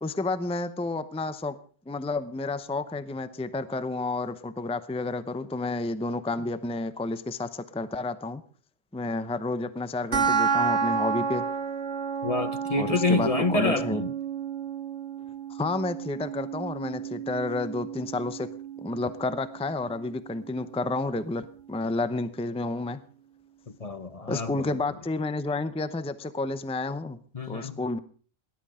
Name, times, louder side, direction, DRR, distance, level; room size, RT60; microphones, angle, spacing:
voice 1, 0.0-1.6 1.9-8.4 8.9-11.4 12.8-14.0 15.5-18.5 18.8-23.0 24.3-27.2 27.5-28.0, left 2 dB, 5° left, 0.7 m, -30 dB
sound 1, 10.1-21.1, right 6 dB, 85° right, 1.9 m, -31 dB
voice 2, 12.2-14.1 23.8-24.8 27.3-27.8, left 3 dB, 35° left, 0.9 m, -27 dB
18.5 x 11.5 x 5.0 m
omnidirectional pair, 1.1 m